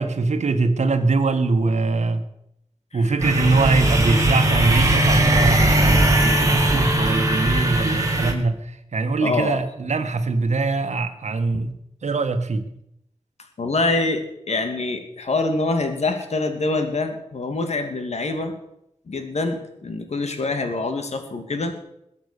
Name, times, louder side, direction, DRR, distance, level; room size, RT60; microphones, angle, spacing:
voice 1, 0.0-2.2 2.9-11.7 12.0-12.6, right 3 dB, 75° right, 8 dB, 1.6 m, -22 dB
sound 1, 3.2-8.3, right 1 dB, 25° right, 3.3 m, -19 dB
voice 2, 9.2-9.6 13.6-18.5 19.1-21.8, left 3 dB, 65° left, 6 dB, 2.4 m, -25 dB
21.5 x 8.1 x 6.8 m, 0.79 s
wide cardioid pair, 110°, 12 cm